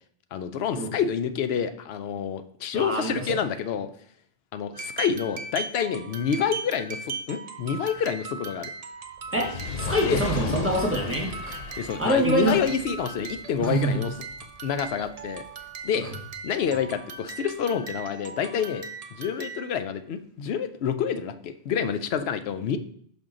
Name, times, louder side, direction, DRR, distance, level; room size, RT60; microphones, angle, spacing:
voice 1, 0.3-3.9 4.5-8.7 10.1-10.2 11.8-14.1 14.6-15.4 15.8-16.1 16.4-18.8 19.2-22.8, left 7 dB, 85° left, 11 dB, 0.8 m, -28 dB
voice 2, 2.7-3.4 9.3-9.5 9.8-11.6 12.0-12.6 13.6-14.0 15.9-16.1, right 1 dB, 15° right, -1 dB, 1.3 m, -25 dB
sound 1, 4.7-19.8, right 4 dB, 45° right, 0.6 m, -39 dB
Fire, 9.2-15.7 16.4-16.5, left 4 dB, 50° left, 0.6 m, -36 dB
6.1 x 5.3 x 3.7 m, 0.62 s
omnidirectional pair, 1.0 m